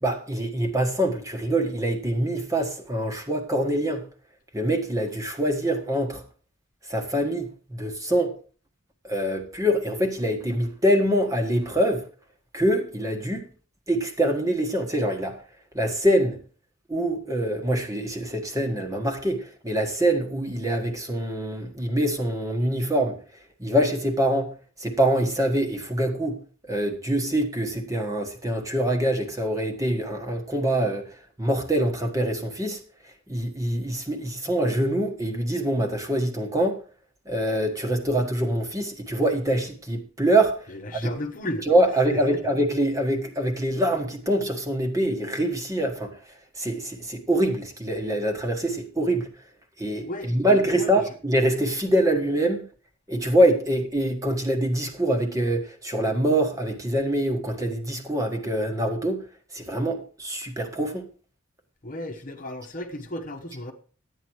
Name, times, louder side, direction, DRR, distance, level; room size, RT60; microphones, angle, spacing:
voice 1, 0.0-4.0 4.5-6.2 6.9-8.3 9.0-12.0 12.5-13.4 13.9-15.4 15.7-16.4 16.9-23.2 23.6-24.5 24.8-26.4 26.7-31.1 31.4-32.8 33.3-36.8 37.2-40.6 40.9-41.1 41.7-46.2 46.6-49.3 49.8-52.7 53.1-59.2 59.5-61.1, right 1 dB, 15° right, 1.5 m, -24 dB
voice 2, 40.7-41.7 42.1-42.2 50.0-50.9 61.8-63.7, left 1 dB, 40° left, 1.2 m, -34 dB
12.5 x 9.0 x 4.7 m
head